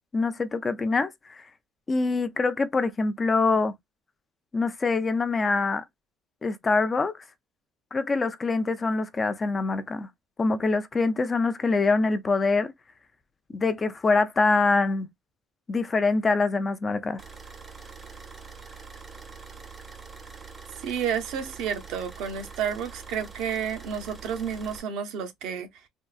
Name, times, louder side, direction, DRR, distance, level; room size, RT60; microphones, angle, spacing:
voice 1, 0.1-1.4 1.9-3.7 4.5-5.8 6.4-7.1 7.9-10.1 10.4-12.7 13.5-15.1 15.7-17.2, left 3 dB, 25° left, 0.4 m, -24 dB
sound 1, 17.2-24.8, right 5 dB, 25° right, 0.6 m, -44 dB
voice 2, 20.8-25.7, right 7 dB, 75° right, 0.6 m, -31 dB
3.6 x 2.3 x 2.4 m
cardioid pair, 140°, 0 cm